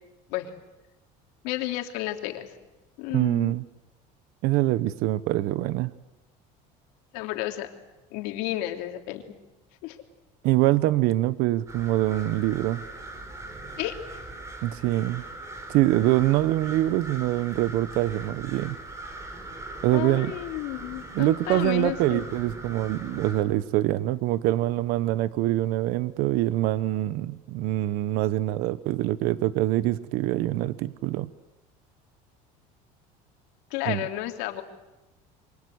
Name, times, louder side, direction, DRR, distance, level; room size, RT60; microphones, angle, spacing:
voice 1, 1.4-2.5 3.0-3.5 7.1-7.7 8.1-9.3 9.8-10.0 13.8-14.0 19.9-22.2 33.7-34.6, left 15 dB, 75° left, 4 dB, 3.1 m, -32 dB
voice 2, 3.1-3.6 4.4-5.9 10.4-12.8 14.6-15.2 15.7-18.8 19.8-20.3 21.1-31.3 33.9-34.0, right 15 dB, 65° right, 15 dB, 1.0 m, -24 dB
sound 1, 11.7-23.4, right 2 dB, 20° right, 4.0 m, -40 dB
28.0 x 24.5 x 8.1 m, 1.0 s
cardioid pair, 155°, 16 cm